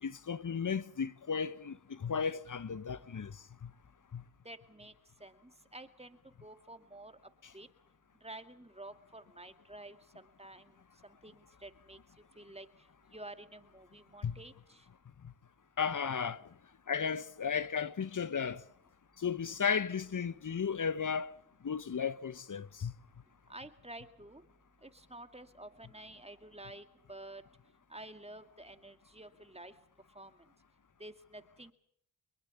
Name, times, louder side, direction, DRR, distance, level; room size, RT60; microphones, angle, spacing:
voice 1, 0.0-3.4 3.6-3.7 4.1-4.2 14.2-14.4 15.8-16.4 16.9-18.6 19.2-21.3 21.6-22.9, left 6 dB, 40° left, 1.1 m, -34 dB
voice 2, 4.4-4.9 5.2-7.2 7.5-7.7 8.2-10.7 11.0-12.0 12.4-12.7 13.1-14.9 23.5-24.4 24.8-27.4 27.9-29.7 30.1-30.4 31.0-31.7, right 1 dB, 15° right, 2.3 m, -50 dB
24.5 x 22.0 x 7.2 m
supercardioid pair, 50°, 48 cm